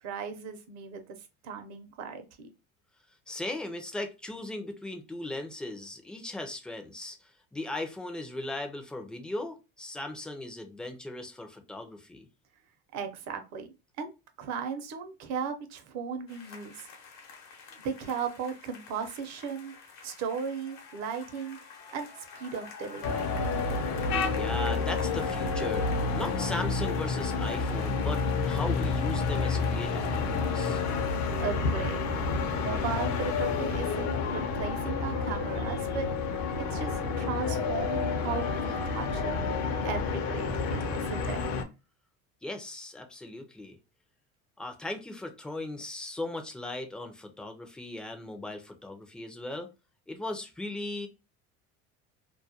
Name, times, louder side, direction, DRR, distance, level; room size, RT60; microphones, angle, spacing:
voice 1, 0.0-2.5 12.9-13.7 14.0-14.1 14.4-16.9 17.8-19.7 20.0-21.6 21.9-22.1 22.3-23.4 31.4-32.1 32.5-36.1 36.6-39.4 39.8-41.4, right 6 dB, 60° right, 0.7 m, -36 dB
voice 2, 3.3-12.3 24.3-30.8 42.4-43.8 44.6-49.7 50.1-51.1, left 1 dB, 5° left, 0.3 m, -38 dB
sound 1, 16.3-31.4, left 5 dB, 90° left, 0.9 m, -49 dB
sound 2, 23.0-41.6, left 4 dB, 65° left, 0.6 m, -29 dB
2.3 x 2.1 x 2.7 m
cardioid pair, 125°, 30 cm